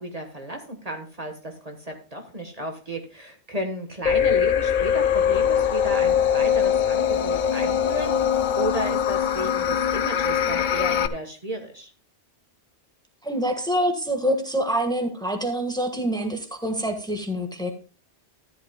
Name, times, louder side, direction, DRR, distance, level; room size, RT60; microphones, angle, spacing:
voice 1, 0.0-11.9, right 1 dB, 35° right, 4 dB, 1.4 m, -33 dB
sound 1, 4.1-11.1, left 8 dB, 55° left, 0.7 m, -22 dB
voice 2, 13.2-17.7, equal, 5° left, 4 dB, 1.5 m, -26 dB
14.0 x 10.5 x 2.2 m, 0.34 s
omnidirectional pair, 1.1 m